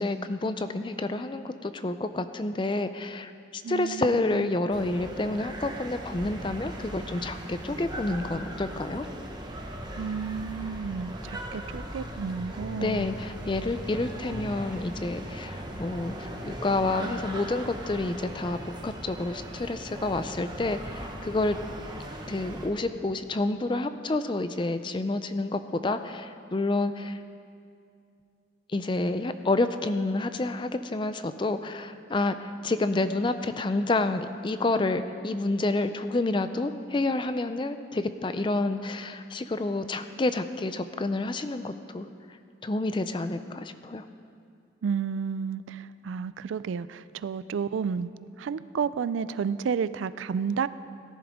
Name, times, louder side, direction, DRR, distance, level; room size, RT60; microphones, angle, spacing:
voice 1, 0.0-9.1 12.8-21.6 22.3-27.2 28.7-42.4 42.6-44.1, left 2 dB, 25° left, 10 dB, 0.4 m, -29 dB
voice 2, 3.6-4.5 10.0-13.1 44.8-48.1 48.4-50.7, right 6 dB, 85° right, 15 dB, 0.3 m, -31 dB
sound 1, 4.7-22.7, right 1 dB, 20° right, 1.1 m, -39 dB
17.5 x 11.0 x 3.6 m, 2.3 s
head